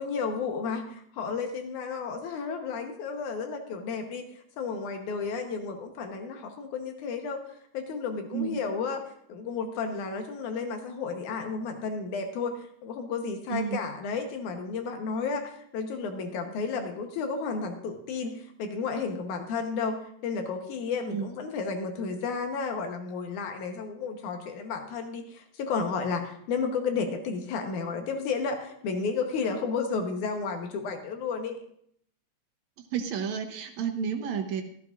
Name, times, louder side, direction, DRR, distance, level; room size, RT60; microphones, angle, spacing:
voice 1, 0.0-4.3 4.6-7.4 7.7-9.0 9.3-31.6, left 5 dB, 85° left, 5 dB, 2.6 m, -32 dB
voice 2, 13.5-13.8 21.1-21.3 32.8-34.6, right 7 dB, 75° right, 5 dB, 2.1 m, -31 dB
14.0 x 13.5 x 2.5 m, 0.67 s
omnidirectional pair, 3.4 m